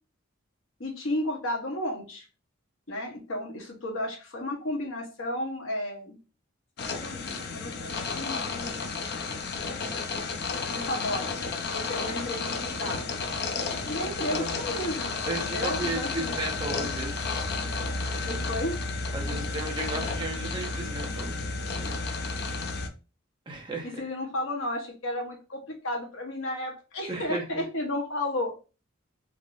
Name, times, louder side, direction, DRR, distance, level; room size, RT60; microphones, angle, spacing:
voice 1, 0.8-2.3 2.9-6.2 6.9-8.8 10.7-11.3 11.7-13.1 13.9-16.4 18.3-18.8 23.8-28.5, left 1 dB, 70° left, 1 dB, 0.9 m, -33 dB
sound 1, 6.8-22.9, left 4 dB, 50° left, 0.4 m, -32 dB
voice 2, 15.2-17.3 19.1-21.3 21.8-21.9 23.5-24.0 27.1-27.6, right 2 dB, 20° right, 0 dB, 0.6 m, -35 dB
3.5 x 2.6 x 2.5 m, 0.33 s
head